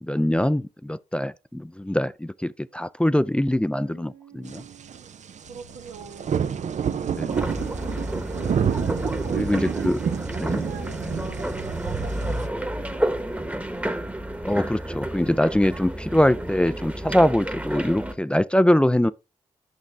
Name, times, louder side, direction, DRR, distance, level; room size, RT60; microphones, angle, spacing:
voice 1, 0.0-4.6 7.1-7.5 9.4-10.0 10.4-10.6 14.4-19.1, left 1 dB, 10° left, 0.4 m, -23 dB
voice 2, 3.8-5.1 5.5-6.4 9.0-13.5, right 6 dB, 85° right, 1.2 m, -43 dB
sound 1, 4.5-12.5, right 8 dB, 60° right, 0.6 m, -29 dB
Accelerating revving vroom, 5.4-15.8, left 5 dB, 55° left, 1.2 m, -51 dB
sound 2, 7.3-18.1, right 1 dB, 10° right, 1.1 m, -31 dB
6.7 x 5.9 x 3.3 m
supercardioid pair, 45°, 13 cm